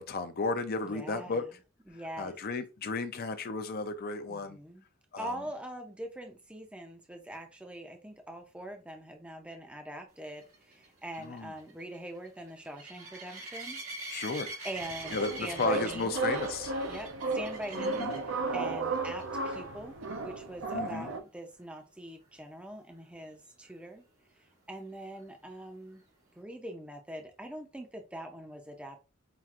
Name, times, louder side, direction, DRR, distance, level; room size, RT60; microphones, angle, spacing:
voice 1, 0.0-1.4 2.2-4.6 5.1-5.3 11.2-11.5 14.1-14.5 15.1-16.7 17.7-18.2 20.7-21.1, left 3 dB, 45° left, 0.5 m, -34 dB
voice 2, 0.8-1.5 1.9-2.4 4.3-4.8 5.2-13.8 14.6-16.2 16.9-24.0 24.7-26.0 26.4-29.0, right 1 dB, 5° right, 0.5 m, -43 dB
sound 1, 10.4-18.3 18.9-19.2 19.5-19.6 20.0-20.1 23.7-23.8, right 2 dB, 85° right, 1.8 m, -44 dB
sound 2, 14.8-21.2, right 3 dB, 60° right, 0.6 m, -34 dB
5.7 x 2.5 x 2.4 m
head